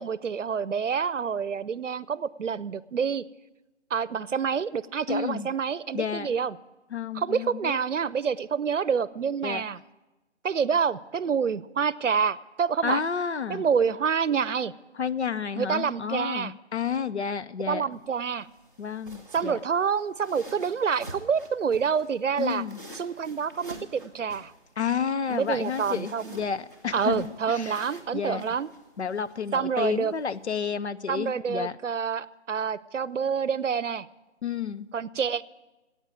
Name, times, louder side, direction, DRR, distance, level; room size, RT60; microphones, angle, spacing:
voice 1, 0.0-3.2 3.9-6.6 7.1-9.8 10.4-13.0 13.5-14.7 15.6-16.5 17.7-18.5 19.3-22.6 22.9-24.5 25.3-26.3 26.9-28.7 29.5-30.1 31.1-34.1 34.9-35.4, right 6 dB, 80° right, 19 dB, 0.7 m, -27 dB
voice 2, 5.1-5.5 5.9-6.3 6.9-7.8 9.4-9.6 12.8-13.6 14.9-17.9 18.8-19.6 22.4-22.8 24.8-27.8 28.1-28.6 29.0-31.8 34.4-34.9, left 7 dB, 65° left, 14 dB, 0.7 m, -31 dB
sound 1, 17.9-30.5, right 1 dB, 15° left, 0.9 m, -48 dB
14.5 x 8.9 x 9.1 m, 1.1 s
figure-of-eight pair, 170°, 36 cm